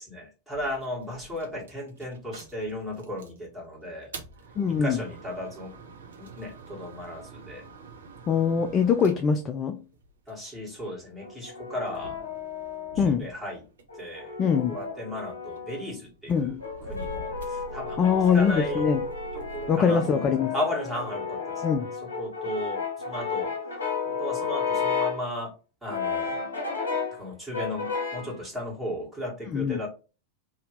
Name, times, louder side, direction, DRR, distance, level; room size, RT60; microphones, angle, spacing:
voice 1, 0.0-4.1 4.8-5.7 6.2-7.6 10.3-12.2 12.9-13.6 13.9-14.3 14.6-16.5 16.9-18.8 19.3-20.2 20.5-21.6 22.0-23.5 24.0-25.5 25.8-26.4 27.1-29.9, left 1 dB, 10° right, 1.7 m, -35 dB
sound 1, 0.5-3.4 3.9-10.6 11.4-14.0 14.3-19.7, right 4 dB, 65° right, 0.6 m, -45 dB
voice 2, 4.6-5.0 8.3-9.8 13.0-13.3 14.4-14.8 16.3-16.6 18.0-19.0 19.7-20.5 21.6-21.9 29.5-29.8, left 6 dB, 25° left, 0.3 m, -23 dB
Brass instrument, 11.2-13.1 13.9-15.9 16.6-25.3 25.9-27.2 27.5-28.4, left 5 dB, 70° left, 1.0 m, -32 dB
2.8 x 2.7 x 3.3 m
figure-of-eight pair, 90°, 0 cm